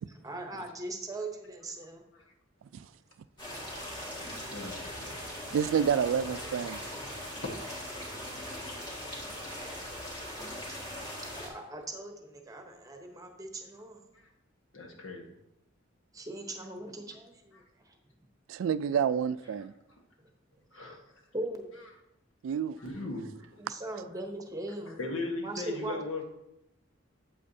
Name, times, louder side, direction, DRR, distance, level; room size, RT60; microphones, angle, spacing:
voice 1, 0.1-2.0 11.3-14.0 16.1-17.9 20.2-20.3 20.7-21.0 21.3-21.7 23.6-25.0 25.4-26.0, right 2 dB, 20° right, 0.9 m, -40 dB
sound 1, 3.4-11.5, equal, 25° left, 2.1 m, -40 dB
voice 2, 4.5-5.2 6.4-6.5 6.8-7.0 9.8-9.9 14.1-14.3 14.7-15.3 20.7-21.0 22.8-23.5 25.0-26.2, left 2 dB, 80° left, 1.4 m, -38 dB
voice 3, 5.5-6.8 18.5-19.7 22.4-22.8, right 7 dB, 80° right, 0.3 m, -29 dB
8.4 x 7.8 x 2.7 m
head